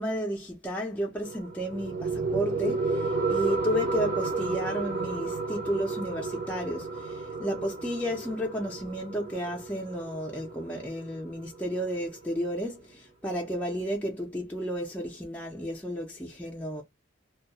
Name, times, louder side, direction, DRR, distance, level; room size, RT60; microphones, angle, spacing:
voice 1, 0.0-16.8, equal, 5° left, 0.5 m, -32 dB
sound 1, 1.2-12.2, right 3 dB, 45° right, 0.6 m, -32 dB
2.2 x 2.1 x 2.7 m
head